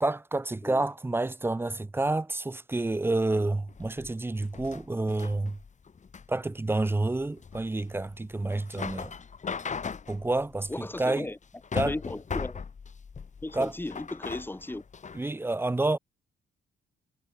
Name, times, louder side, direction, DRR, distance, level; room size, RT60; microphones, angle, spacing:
voice 1, 0.0-5.6 6.3-9.2 10.1-11.3 11.7-11.9 13.5-13.7 15.1-16.0, right 2 dB, 10° right, 0.6 m, -29 dB
sound 1, 3.7-15.3, left 5 dB, 35° left, 2.5 m, -39 dB
voice 2, 10.7-11.4 11.9-12.6 13.4-14.8, left 2 dB, 10° left, 1.6 m, -36 dB
cardioid pair, 90°, 20 cm